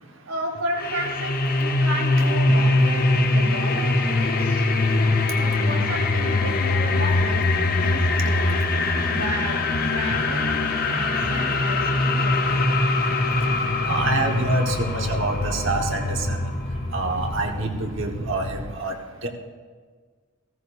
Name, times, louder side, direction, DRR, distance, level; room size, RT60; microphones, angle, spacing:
voice 1, 0.3-4.7 5.3-8.6 9.1-12.5, right 1 dB, 75° right, -1 dB, 2.3 m, -33 dB
sound 1, 0.8-18.7, left 2 dB, 40° left, 0.7 m, -23 dB
voice 2, 13.8-16.4 16.9-18.9 19.2-19.3, right 2 dB, 55° right, 2 dB, 1.2 m, -26 dB
15.5 x 14.5 x 2.5 m, 1.5 s
head